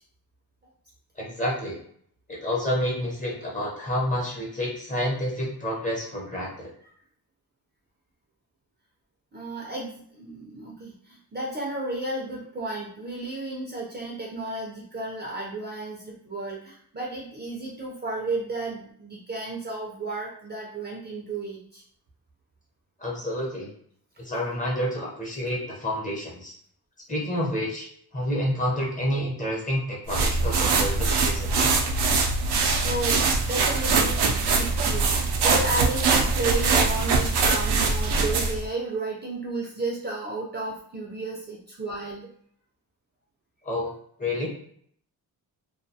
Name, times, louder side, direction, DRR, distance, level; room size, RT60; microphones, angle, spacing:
voice 1, 1.2-1.8 2.3-6.7 23.0-23.7 24.2-26.5 27.1-27.9 28.1-31.7 43.6-43.9 44.2-44.5, left 1 dB, 20° left, -4 dB, 0.7 m, -29 dB
voice 2, 9.3-21.8 32.8-42.3, right 2 dB, 25° right, -4 dB, 0.5 m, -33 dB
sound 1, 30.1-38.6, right 4 dB, 85° right, 0.5 m, -23 dB
2.3 x 2.3 x 2.7 m, 0.64 s
wide cardioid pair, 180°, 39 cm